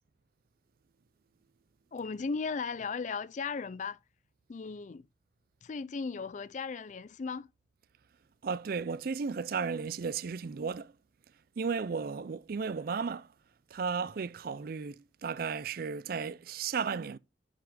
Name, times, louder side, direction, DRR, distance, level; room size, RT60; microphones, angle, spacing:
voice 1, 1.9-4.0 4.5-5.1 5.6-7.5, left 5 dB, 40° left, 0.4 m, -36 dB
voice 2, 8.4-10.9 11.6-13.3 13.7-17.2, right 5 dB, 50° right, 0.4 m, -34 dB
8.7 x 5.9 x 3.7 m
head